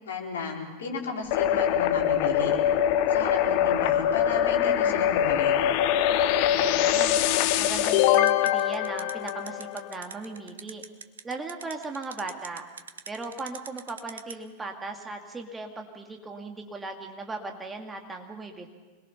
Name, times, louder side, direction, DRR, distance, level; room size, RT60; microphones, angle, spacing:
voice 1, 0.0-2.6 3.1-5.5, left 5 dB, 60° left, -2 dB, 4.4 m, -33 dB
sound 1, 1.3-10.0, left 10 dB, 45° left, 0.9 m, -23 dB
voice 2, 6.1-10.8 11.2-12.6 13.1-18.7, right 3 dB, 15° right, 3 dB, 2.1 m, -38 dB
sound 2, 7.8-14.3, right 7 dB, 65° right, 1.0 m, -41 dB
26.0 x 21.0 x 5.7 m, 1.3 s
figure-of-eight pair, 90°, 0 cm